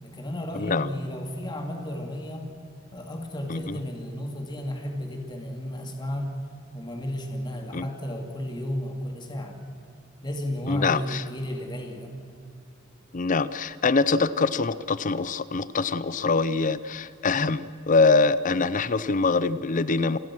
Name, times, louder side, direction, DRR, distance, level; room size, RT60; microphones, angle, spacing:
voice 1, 0.0-2.5 2.9-6.3 6.7-9.6 10.2-12.1, left 1 dB, 20° left, 2 dB, 2.5 m, -33 dB
voice 2, 10.7-11.2 13.1-20.2, left 4 dB, 40° left, 16 dB, 0.6 m, -24 dB
28.5 x 18.5 x 6.2 m, 2.4 s
head